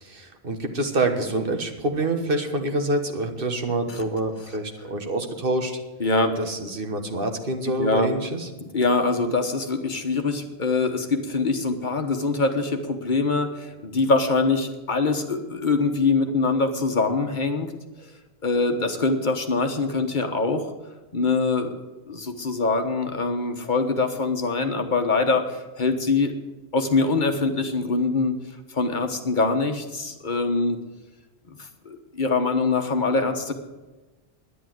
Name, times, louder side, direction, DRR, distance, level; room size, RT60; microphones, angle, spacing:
voice 1, 0.0-5.8 6.4-8.5, right 2 dB, 60° right, 5 dB, 1.5 m, -26 dB
voice 2, 6.0-6.4 7.8-8.1 8.6-17.7 18.4-20.7 21.1-21.7 22.1-26.3 26.7-28.4 28.7-30.8 31.6-33.5, left 3 dB, 50° left, 6 dB, 1.3 m, -23 dB
11.0 x 10.0 x 7.7 m, 1.2 s
omnidirectional pair, 1.1 m